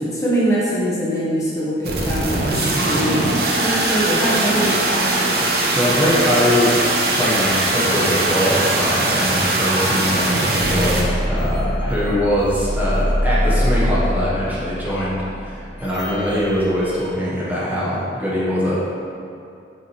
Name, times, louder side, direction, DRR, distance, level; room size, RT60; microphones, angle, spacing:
voice 1, 0.0-5.2, right 1 dB, 20° left, -8 dB, 1.1 m, -23 dB
sound 1, 1.8-11.0, right 2 dB, 60° right, 0.9 m, -20 dB
voice 2, 5.7-15.2 15.4-18.8, equal, 10° right, -8 dB, 1.2 m, -22 dB
sound 2, 10.5-17.1, equal, 65° left, 1.3 m, -24 dB
7.5 x 5.5 x 3.2 m, 2.5 s
head